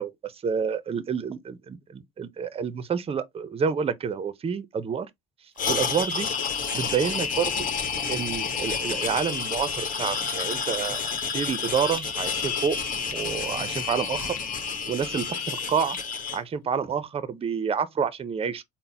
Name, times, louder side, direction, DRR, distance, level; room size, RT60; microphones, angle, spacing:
voice 1, 0.0-5.1 5.7-6.3 6.7-7.5 8.1-11.0 11.3-12.8 13.1-14.3 14.9-16.0 16.3-18.6, right 6 dB, 30° right, 0.6 m, -28 dB
sound 1, 5.6-16.4, left 5 dB, 45° left, 1.4 m, -29 dB
3.9 x 2.1 x 4.1 m
supercardioid pair, 95°, 20 cm